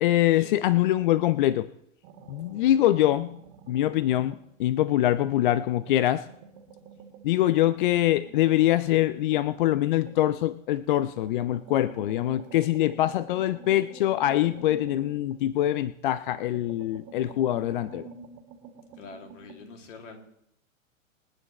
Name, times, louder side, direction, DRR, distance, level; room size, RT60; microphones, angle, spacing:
voice 1, 0.0-1.7 2.3-3.3 3.7-6.2 7.2-18.1, left 13 dB, 40° left, 17 dB, 0.4 m, -24 dB
sound 1, 2.0-4.5 4.8-10.4 10.9-15.9 16.3-19.6, right 6 dB, 40° right, 2.1 m, -48 dB
voice 2, 18.9-20.2, left 4 dB, 60° left, 3 dB, 2.8 m, -45 dB
26.0 x 9.1 x 3.2 m, 0.75 s
hypercardioid pair, 115°, 41 cm